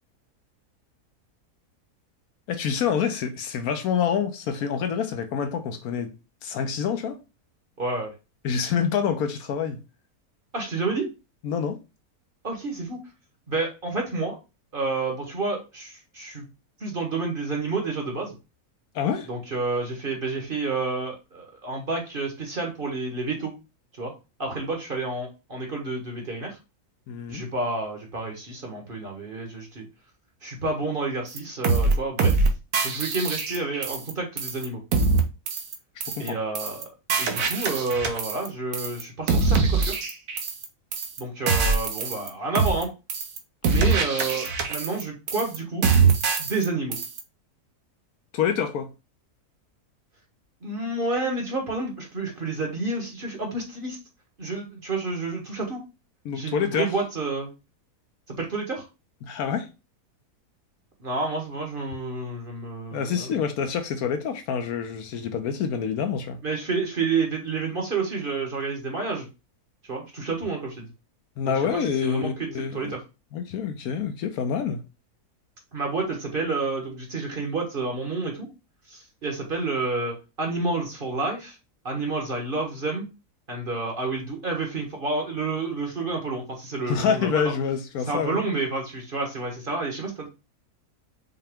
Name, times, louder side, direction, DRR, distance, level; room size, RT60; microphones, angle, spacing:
voice 1, 2.5-6.1 6.4-7.2 8.4-9.8 11.4-11.8 18.9-19.3 27.1-27.5 36.0-36.4 48.3-48.9 56.2-56.9 59.2-59.7 62.9-66.4 71.4-73.0 73.3-74.8 86.8-88.4, left 7 dB, 70° left, 1.1 m, -27 dB
voice 2, 7.8-8.1 10.5-11.1 12.4-13.0 13.5-14.3 14.7-16.5 16.8-18.3 19.3-23.5 24.0-24.1 24.4-26.6 27.3-29.9 30.4-32.4 32.8-34.8 36.2-36.9 37.2-40.0 41.2-42.9 43.6-45.9 46.4-47.0 50.6-54.0 54.4-55.8 56.3-57.5 58.3-58.8 61.0-63.3 66.4-69.3 69.9-70.9 71.4-73.0 75.7-78.5 78.9-81.6 81.8-83.1 83.5-87.5 88.1-90.3, right 3 dB, 40° right, 1.1 m, -29 dB
sound 1, 31.4-31.5 31.6-31.9 32.2-32.5 32.7-34.1 34.4-34.6 34.9-35.2 35.5-35.7 36.0-36.3 36.5-36.8 37.1-38.5 38.7-39.0 39.3-40.6 40.9-41.2 41.5-42.3 42.5-42.8 43.1-43.4 43.6-45.0 45.3-45.6 45.8-46.6 46.9-47.2, right 4 dB, 65° right, 1.1 m, -23 dB
5.6 x 2.2 x 3.5 m
omnidirectional pair, 1.7 m